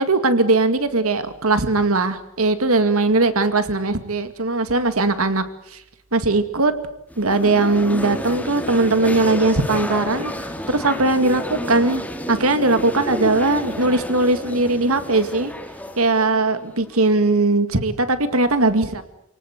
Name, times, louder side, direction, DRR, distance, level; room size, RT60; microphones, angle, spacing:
voice 1, 0.0-5.4 5.7-5.8 6.1-6.7 7.2-10.3 10.7-12.0 12.3-15.5 16.0-19.0, right 2 dB, 75° right, 10 dB, 2.2 m, -19 dB
sound 1, 7.1-17.1, equal, 5° left, 2.5 m, -31 dB
28.5 x 18.5 x 8.2 m, 0.81 s
head